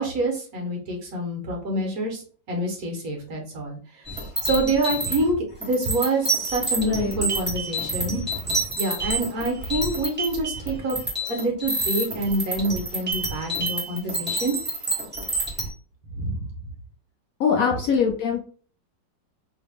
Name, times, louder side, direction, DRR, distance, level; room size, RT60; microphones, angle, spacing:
voice 1, 0.0-3.8 4.1-5.4 5.6-8.2 8.8-11.0 11.3-14.5 16.1-16.5, right 2 dB, 60° right, 0 dB, 1.5 m, -27 dB
sound 1, 4.1-15.7, right 2 dB, 5° right, 1.1 m, -28 dB
voice 2, 6.8-7.2 8.0-8.2 17.4-18.4, left 6 dB, 65° left, 0 dB, 0.9 m, -23 dB
3.2 x 2.9 x 3.4 m, 0.43 s
omnidirectional pair, 1.9 m